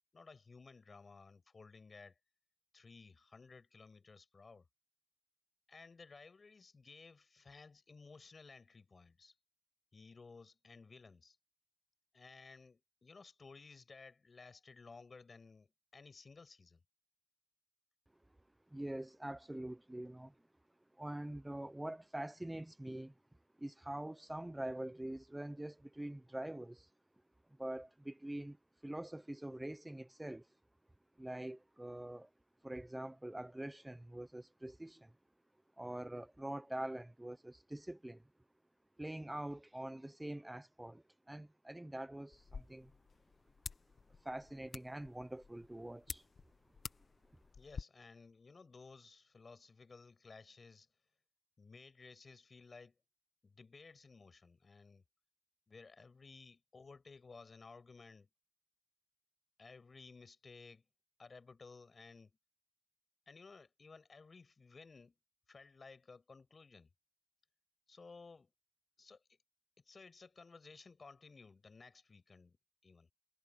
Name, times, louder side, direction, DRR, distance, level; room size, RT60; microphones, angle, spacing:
voice 1, 0.1-2.2 2.7-4.7 5.7-9.4 9.9-11.4 12.1-16.8 47.5-50.9 51.6-53.0 53.4-55.0 55.7-58.3 59.6-60.9 61.2-62.4 63.3-65.2 65.5-66.9 67.9-68.5 69.0-69.4 69.8-72.6 72.8-73.1, left 4 dB, 65° left, 7.4 m, -57 dB
voice 2, 18.7-20.3 21.0-23.1 23.6-26.9 27.6-28.6 28.8-30.5 31.2-32.3 32.6-35.1 35.8-38.2 39.0-42.9 44.2-46.2, right 1 dB, 15° right, 0.7 m, -45 dB
sound 1, 42.3-47.8, left 5 dB, 85° left, 1.4 m, -51 dB
wide cardioid pair, 70°, 0 cm